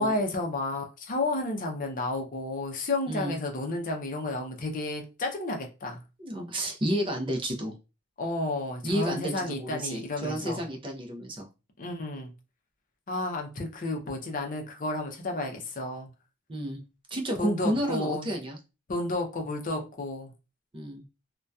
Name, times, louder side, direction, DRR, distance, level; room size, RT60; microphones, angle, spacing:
voice 1, 0.0-6.0 8.2-10.6 11.8-12.3 13.1-16.1 17.4-18.3 18.9-20.3, left 2 dB, 40° left, 0.6 m, -31 dB
voice 2, 6.2-7.7 8.8-11.5 16.5-16.8 17.1-18.6 20.7-21.0, right 1 dB, 25° right, 0.5 m, -31 dB
2.7 x 2.2 x 2.2 m
head